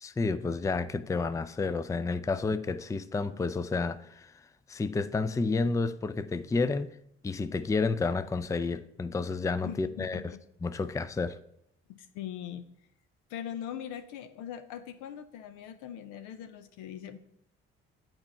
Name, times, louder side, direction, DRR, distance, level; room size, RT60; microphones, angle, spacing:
voice 1, 0.0-4.3 4.7-6.9 7.2-10.2 10.6-11.4, left 4 dB, 10° left, 13 dB, 0.4 m, -30 dB
voice 2, 9.6-10.4 11.9-12.6 13.3-17.2, left 10 dB, 75° left, 10 dB, 0.7 m, -41 dB
8.8 x 4.5 x 5.3 m, 0.74 s
hypercardioid pair, 50°, 30 cm